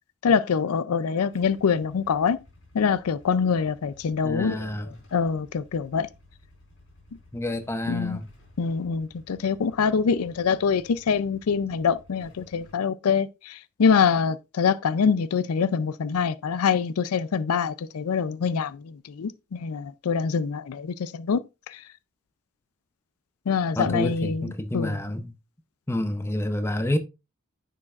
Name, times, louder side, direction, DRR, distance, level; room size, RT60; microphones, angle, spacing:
voice 1, 0.2-2.4 2.7-4.7 5.1-6.1 7.9-8.2 8.6-21.4 21.7-21.8 23.5-25.0, left 6 dB, 90° left, 0.4 m, -25 dB
Motorcycle / Engine starting / Idling, 1.3-12.7, left 2 dB, 60° left, 4.2 m, -54 dB
voice 2, 4.2-4.9 7.3-8.3 23.8-25.3 25.9-27.0, left 1 dB, 10° left, 0.7 m, -28 dB
9.6 x 6.6 x 2.5 m
head